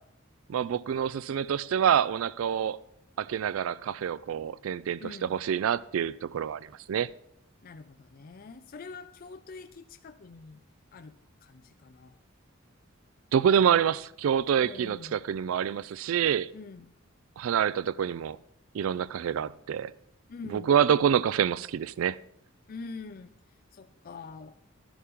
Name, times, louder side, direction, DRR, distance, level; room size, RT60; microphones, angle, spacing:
voice 1, 0.5-2.8 3.2-5.0 5.3-7.1 13.3-16.5 17.4-18.4 18.7-19.9 20.5-22.2, right 8 dB, 75° right, 0.3 m, -26 dB
voice 2, 5.0-5.4 7.6-10.6 10.9-11.2 11.4-12.2 14.6-15.2 16.5-16.9 20.3-20.7 22.7-24.5, left 4 dB, 45° left, 0.5 m, -45 dB
11.5 x 11.0 x 3.6 m
head